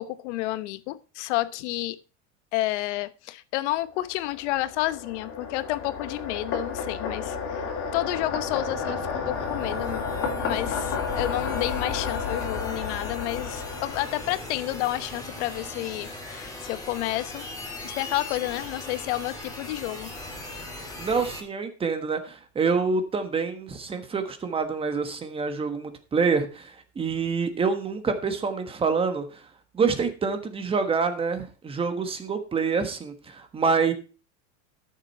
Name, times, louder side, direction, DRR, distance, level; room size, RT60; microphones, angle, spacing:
voice 1, 0.0-2.0 2.5-7.7 7.9-10.1 10.4-17.5 17.8-20.1, left 17 dB, 70° left, 1.0 m, -30 dB
sound 1, 4.1-14.8, left 5 dB, 35° left, 2.9 m, -32 dB
sound 2, 8.1-21.4, left 1 dB, 10° left, 3.1 m, -40 dB
voice 2, 21.0-29.2 29.7-33.9, right 5 dB, 15° right, 1.3 m, -26 dB
13.0 x 7.3 x 4.4 m
supercardioid pair, 165°, 36 cm